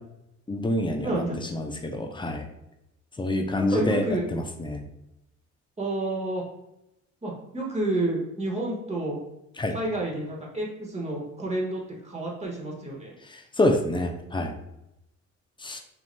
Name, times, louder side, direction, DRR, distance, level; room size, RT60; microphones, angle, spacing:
voice 1, 0.5-1.2 1.5-2.5 3.2-4.0 4.3-4.8 9.6-9.7 13.3-14.5 15.6-15.8, left 1 dB, 15° left, 4 dB, 0.5 m, -27 dB
voice 2, 1.0-1.4 3.5-4.2 5.8-6.4 7.2-9.2 9.7-13.1, right 2 dB, 20° right, -3 dB, 1.4 m, -30 dB
5.6 x 2.9 x 2.2 m, 0.85 s
cardioid pair, 90°, 30 cm